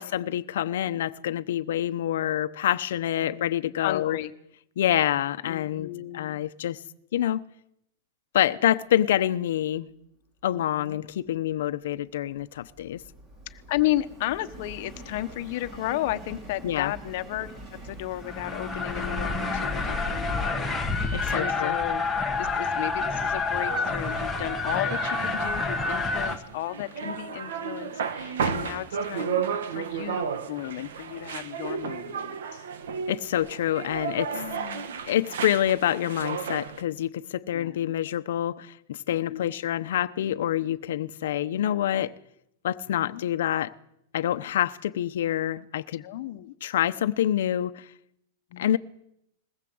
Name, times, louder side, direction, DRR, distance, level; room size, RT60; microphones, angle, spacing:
voice 1, 0.0-4.2 4.8-6.8 7.1-7.5 8.3-9.9 10.4-13.0 16.6-16.9 21.1-21.8 33.1-34.4 35.1-42.1 42.6-43.7 44.1-46.0 46.6-47.9 48.6-48.8, left 11 dB, 70° left, 0.9 m, -27 dB
voice 2, 2.9-4.3 5.4-6.4 10.7-11.0 13.5-17.5 17.8-22.0 22.4-32.6 34.3-34.8 37.5-37.9 39.1-39.5 43.0-43.2 45.9-46.5 48.5-48.8, left 15 dB, 45° left, 1.2 m, -34 dB
Subway metro underground, 11.4-22.7, right 2 dB, 25° right, 3.4 m, -46 dB
sound 1, 18.2-26.4, left 3 dB, 5° left, 1.6 m, -28 dB
sound 2, 23.6-36.8, right 7 dB, 80° right, 2.0 m, -33 dB
21.5 x 19.5 x 8.0 m
supercardioid pair, 175°, 0 cm